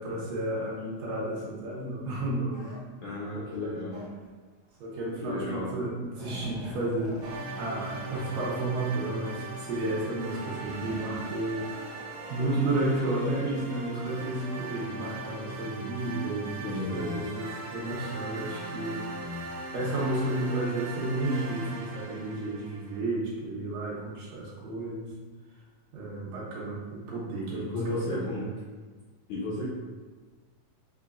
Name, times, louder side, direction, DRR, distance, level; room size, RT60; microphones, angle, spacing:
voice 1, 0.0-2.7 3.3-3.8 4.8-7.3 7.6-12.0 12.3-19.0 19.7-25.1 25.9-28.4, right 2 dB, 75° right, -6 dB, 2.3 m, -32 dB
sound 1, 2.5-2.8 3.9-4.4 5.4-5.5 5.8-7.4 7.9-8.0 8.3-8.4 9.1-9.6 10.4-12.3, equal, 60° left, 0.8 m, -45 dB
voice 2, 3.0-4.0 5.2-5.7 16.6-17.2 19.2-19.5 27.5-28.4 29.3-29.8, left 2 dB, 75° left, -8 dB, 1.7 m, -34 dB
sound 2, 7.2-23.0, right 2 dB, 90° right, 2.4 m, -40 dB
5.9 x 2.1 x 2.4 m, 1.4 s
omnidirectional pair, 4.0 m